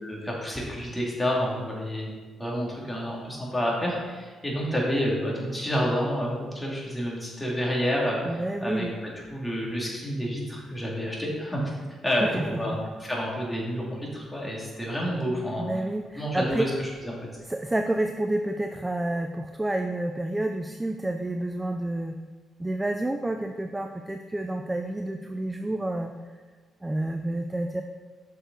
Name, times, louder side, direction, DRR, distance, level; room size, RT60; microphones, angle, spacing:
voice 1, 0.0-2.1 2.4-8.9 9.3-11.6 12.0-15.7 16.2-17.1, equal, 10° left, -4 dB, 2.3 m, -29 dB
voice 2, 8.2-9.0 9.2-9.4 12.2-12.8 15.6-16.7 17.5-22.2 22.6-26.1 26.8-27.8, right 1 dB, 15° right, 6 dB, 0.4 m, -29 dB
6.6 x 6.5 x 3.9 m, 1.4 s
cardioid pair, 90°, 0 cm